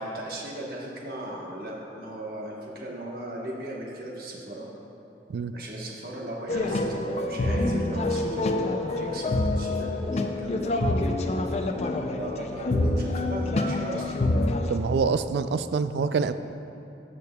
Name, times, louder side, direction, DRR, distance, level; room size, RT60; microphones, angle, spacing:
voice 1, 0.0-4.7 5.5-10.7 11.9-14.2, right 1 dB, 55° right, -3 dB, 1.2 m, -37 dB
sound 1, 6.5-14.8, left 2 dB, 35° left, 0.4 m, -26 dB
voice 2, 14.7-16.3, right 5 dB, 70° right, 11 dB, 0.3 m, -26 dB
13.5 x 6.7 x 2.3 m, 2.8 s
head